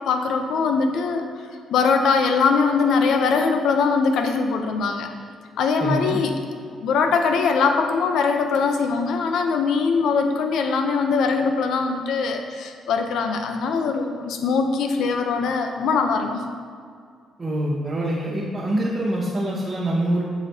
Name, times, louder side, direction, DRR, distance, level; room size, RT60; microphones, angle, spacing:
voice 1, 0.1-1.3 1.7-5.1 5.6-6.3 6.8-16.4, left 5 dB, 80° left, 5 dB, 0.6 m, -21 dB
voice 2, 5.8-6.2 17.4-20.2, right 1 dB, 30° right, -6 dB, 0.9 m, -24 dB
7.7 x 5.0 x 2.8 m, 2.1 s
cardioid pair, 90°, 0 cm